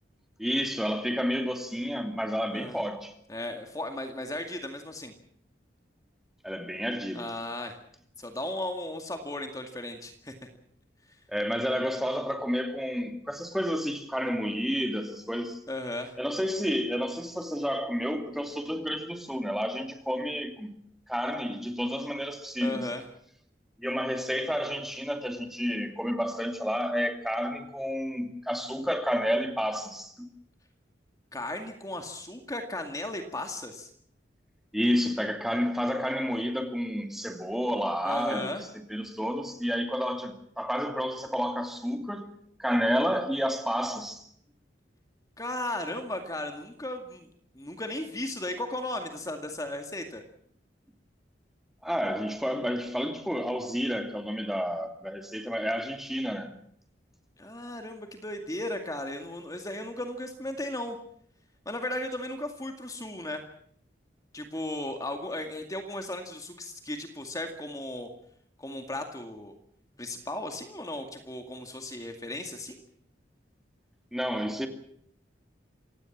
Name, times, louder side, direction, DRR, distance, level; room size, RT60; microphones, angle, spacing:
voice 1, 0.4-3.1 6.4-7.3 11.3-15.6 16.2-20.7 21.1-22.9 23.8-30.3 34.7-38.6 38.9-42.3 42.6-44.2 51.8-56.5 74.1-74.7, equal, ahead, 2.6 m, -30 dB
voice 2, 3.3-5.1 7.1-7.8 8.2-10.3 15.7-16.1 22.6-23.0 31.3-33.9 38.0-38.6 45.4-47.3 47.6-50.2 57.4-61.0 61.7-63.4 64.3-68.1 68.6-69.5 70.0-72.8, left 1 dB, 20° left, 2.2 m, -36 dB
28.0 x 17.0 x 7.4 m
head